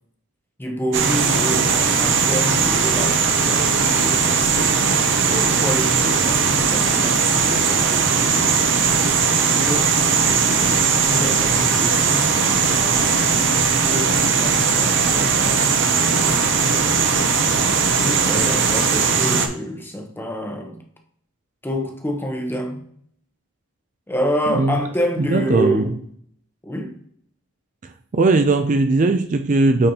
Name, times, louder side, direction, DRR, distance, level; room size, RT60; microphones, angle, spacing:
voice 1, 0.6-4.8 5.2-8.5 9.4-13.2 13.8-17.4 17.7-20.8 21.6-22.8 24.1-25.9 26.6-26.9, equal, 10° left, 0.8 m, -28 dB
sound 1, 0.9-19.5, right 5 dB, 60° right, 0.8 m, -18 dB
voice 2, 25.2-25.8 28.1-29.9, right 3 dB, 35° right, 0.4 m, -18 dB
8.5 x 4.1 x 2.8 m
head